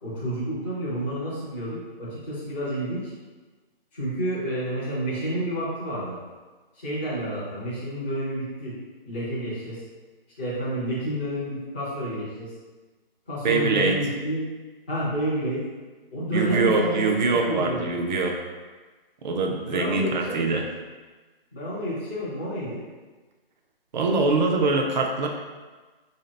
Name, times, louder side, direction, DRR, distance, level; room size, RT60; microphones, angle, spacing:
voice 1, 0.0-3.1 3.9-6.2 6.7-8.8 9.1-9.8 10.4-12.5 13.3-14.4 14.9-15.6 16.1-18.0 19.7-20.7 21.5-22.8, equal, 10° left, -12 dB, 0.4 m, -29 dB
voice 2, 13.4-14.0 16.3-18.4 19.2-20.7 23.9-25.3, right 3 dB, 50° right, 2 dB, 0.5 m, -23 dB
3.4 x 2.7 x 3.2 m, 1.3 s
hypercardioid pair, 155°, 29 cm